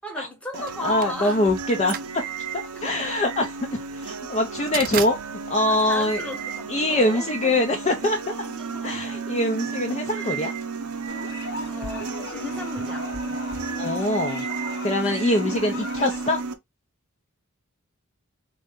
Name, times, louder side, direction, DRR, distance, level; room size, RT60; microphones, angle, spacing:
voice 1, 0.0-1.4 2.7-3.0 5.7-7.6 8.3-9.1 10.1-10.3 11.7-13.1, left 1 dB, 5° left, 1.1 m, -36 dB
sound 1, 0.5-16.5, right 4 dB, 85° right, 0.7 m, -33 dB
sound 2, 0.7-6.8, right 9 dB, 40° right, 0.4 m, -36 dB
voice 2, 0.8-2.2 2.8-6.2 6.7-8.3 8.8-10.5 13.8-14.4 14.8-16.4, left 1 dB, 30° left, 0.5 m, -24 dB
sound 3, 11.1-16.4, left 2 dB, 50° left, 0.9 m, -37 dB
3.9 x 2.7 x 3.4 m
head